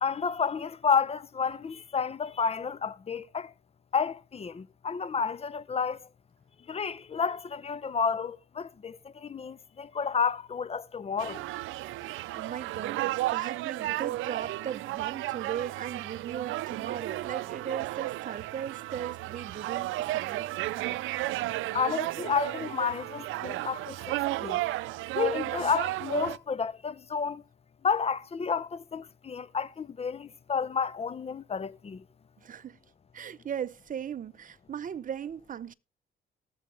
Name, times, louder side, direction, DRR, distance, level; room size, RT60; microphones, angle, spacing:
voice 1, 0.0-3.5 3.9-6.1 6.7-11.4 21.7-24.6 25.1-27.4 27.8-32.0, left 6 dB, 30° left, 0.6 m, -31 dB
sound 1, 11.2-26.4, right 17 dB, 85° right, 0.5 m, -33 dB
voice 2, 11.9-20.5 20.8-21.1 32.4-32.8 33.1-35.7, right 9 dB, 40° right, 0.7 m, -38 dB
19.0 x 7.2 x 3.4 m
cardioid pair, 90°, 20 cm